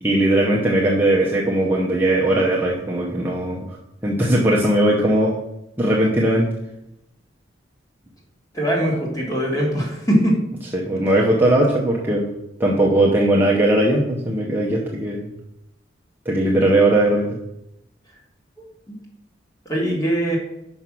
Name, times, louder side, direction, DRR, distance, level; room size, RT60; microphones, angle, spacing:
voice 1, 0.0-3.7 4.0-5.3 5.8-6.5 10.7-12.3 12.6-15.3 16.3-17.4, right 1 dB, 10° right, -4 dB, 0.8 m, -19 dB
voice 2, 8.5-10.4 18.9-19.0 19.7-20.4, equal, 20° left, -2 dB, 1.9 m, -21 dB
5.8 x 5.5 x 6.0 m, 0.85 s
head